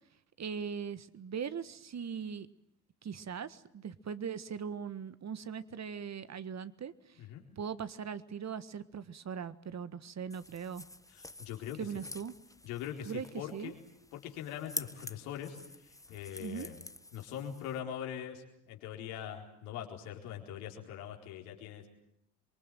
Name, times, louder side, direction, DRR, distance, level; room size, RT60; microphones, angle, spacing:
voice 1, 0.4-2.5 3.0-7.2 7.6-10.8 11.8-12.3 13.0-13.3 13.5-13.7 16.4-16.7, right 7 dB, 35° right, 14 dB, 1.6 m, -40 dB
sound 1, 10.3-17.8, left 2 dB, 5° left, 1.4 m, -48 dB
voice 2, 11.1-11.9 12.6-13.8 14.1-16.8 17.1-21.9, left 9 dB, 75° left, 1 dB, 4.3 m, -42 dB
27.0 x 23.5 x 9.2 m, 0.76 s
hypercardioid pair, 55°, 44 cm